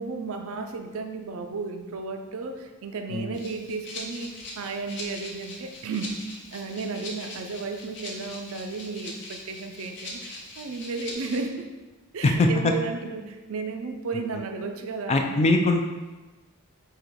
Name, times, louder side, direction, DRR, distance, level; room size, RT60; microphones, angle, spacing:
voice 1, 0.0-6.2 6.4-11.7 12.1-15.5, right 4 dB, 70° right, 6 dB, 0.4 m, -34 dB
Rattle (instrument), 3.3-11.4, left 2 dB, 55° left, 0.8 m, -41 dB
voice 2, 12.2-12.7 15.1-15.8, left 2 dB, 30° left, 4 dB, 0.4 m, -21 dB
3.8 x 2.8 x 4.6 m, 1.2 s
head